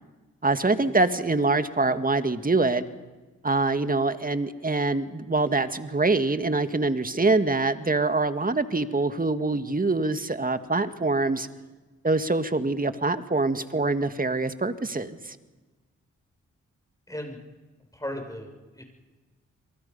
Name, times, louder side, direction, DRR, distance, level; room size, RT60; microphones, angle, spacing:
voice 1, 0.4-2.8 3.4-11.5 12.0-15.4, right 3 dB, 25° right, 9 dB, 1.9 m, -24 dB
voice 2, 17.1-17.4 17.9-18.8, left 1 dB, 10° left, 3 dB, 6.8 m, -36 dB
29.5 x 23.5 x 5.6 m, 1.2 s
supercardioid pair, 45°, 32 cm